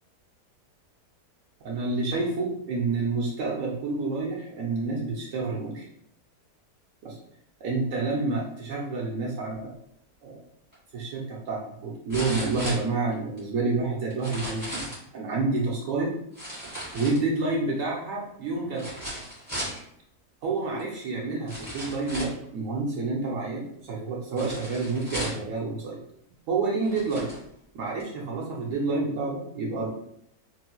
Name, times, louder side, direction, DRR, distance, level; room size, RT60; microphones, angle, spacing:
voice 1, 1.6-5.9 7.0-7.2 7.6-9.7 10.2-10.4 10.9-16.1 16.9-18.9 20.4-26.0 26.5-27.3 27.7-29.9, right 3 dB, 65° right, -3 dB, 0.9 m, -29 dB
sound 1, 10.7-10.8 12.1-13.4 14.1-15.1 16.3-17.5 18.7-19.8 20.8-20.9 21.5-22.4 24.4-25.5 26.3-26.4 26.8-27.4 28.0-28.1, equal, 5° right, 1.3 m, -36 dB
3.2 x 3.0 x 2.2 m, 0.70 s
omnidirectional pair, 1.7 m